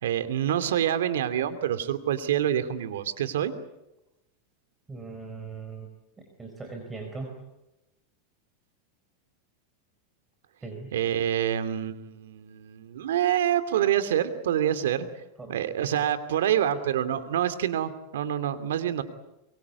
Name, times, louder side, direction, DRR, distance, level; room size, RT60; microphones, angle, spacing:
voice 1, 0.0-3.5 10.9-15.1 15.5-19.0, right 10 dB, 90° right, 11 dB, 2.6 m, -26 dB
voice 2, 4.9-5.9 6.2-7.3 10.6-10.9 15.4-15.5, right 4 dB, 15° right, 3 dB, 4.4 m, -39 dB
24.0 x 23.5 x 8.4 m, 0.94 s
supercardioid pair, 140°, 0 cm